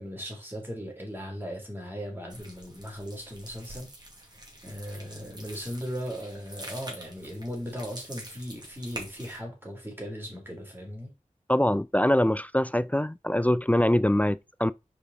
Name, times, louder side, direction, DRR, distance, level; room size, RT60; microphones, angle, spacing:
voice 1, 0.0-3.9 4.6-11.1, equal, 15° right, 3.1 m, -38 dB
sound 1, 2.3-9.4, right 1 dB, 30° right, 2.4 m, -45 dB
voice 2, 11.5-14.7, left 1 dB, 10° left, 0.3 m, -23 dB
5.0 x 4.9 x 4.1 m
wide cardioid pair, 50°, 14 cm